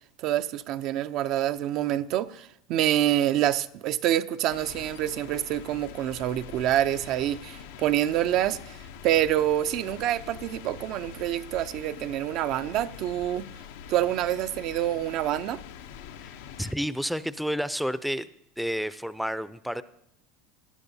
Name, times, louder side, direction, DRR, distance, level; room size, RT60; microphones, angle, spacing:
voice 1, 0.2-8.8 9.0-13.5 13.9-15.6, right 12 dB, 55° right, 0.5 m, -26 dB
sound 1, 4.5-16.7, left 8 dB, 75° left, 0.7 m, -44 dB
voice 2, 16.6-18.3 18.6-19.8, equal, ahead, 0.5 m, -30 dB
18.0 x 11.5 x 2.7 m
hypercardioid pair, 90°, 0 cm